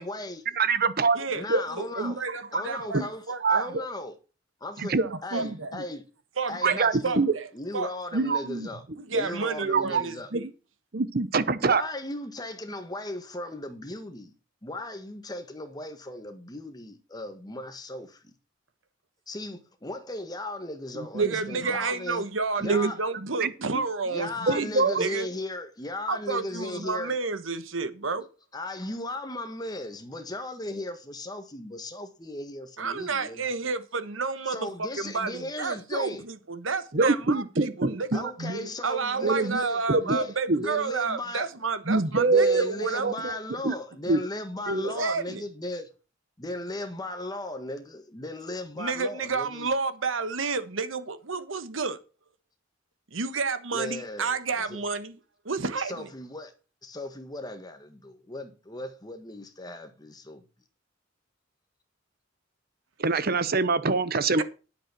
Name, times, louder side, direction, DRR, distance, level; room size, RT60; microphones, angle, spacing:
voice 1, 0.0-0.4 1.3-2.3 2.5-4.2 4.6-5.0 5.2-6.0 6.5-7.3 7.5-8.8 9.1-10.3 11.6-14.3 14.6-18.3 19.3-22.3 22.6-23.0 24.0-27.2 28.5-33.5 34.5-36.2 38.1-41.5 42.3-45.9 46.4-49.7 53.7-54.8 55.8-56.5 56.8-60.4, left 1 dB, 20° left, 1.6 m, -37 dB
voice 2, 0.6-1.2 1.5-1.6 2.0-2.1 2.9-3.1 3.4-3.6 4.8-5.0 5.3-5.5 6.6-7.3 8.1-8.7 9.1-9.2 9.7-10.0 10.3-10.5 10.9-11.8 21.1-21.6 22.6-23.8 24.4-25.1 36.9-38.7 39.2-40.2 40.5-40.7 41.9-42.6 43.0-43.3 43.6-43.8 44.1-44.2 44.7-44.8 63.0-64.4, right 3 dB, 50° right, 0.9 m, -25 dB
voice 3, 2.2-3.0 3.3-3.7 5.0-5.7 6.4-7.4 7.7-7.9 9.1-10.4 21.2-24.7 25.0-25.3 26.1-28.3 32.8-34.7 35.0-38.2 38.8-43.1 44.8-45.4 48.8-52.0 53.1-55.1 55.4-56.1, right 4 dB, 80° right, 1.3 m, -30 dB
9.6 x 7.8 x 6.1 m
head